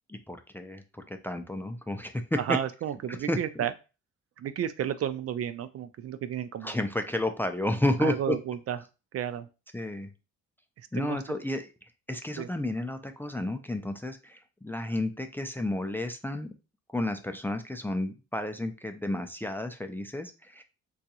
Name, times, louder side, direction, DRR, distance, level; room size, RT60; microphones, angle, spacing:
voice 1, 0.1-2.6 3.1-3.6 6.6-8.4 9.7-10.1 10.9-11.7 12.1-16.5 16.9-20.6, left 1 dB, 5° left, 7 dB, 0.4 m, -31 dB
voice 2, 2.4-3.7 4.4-6.8 8.0-8.8 9.1-9.5 10.9-11.4 12.4-12.5, right 10 dB, 50° right, 12 dB, 0.4 m, -32 dB
3.7 x 2.4 x 2.8 m, 0.30 s
cardioid pair, 90°, 30 cm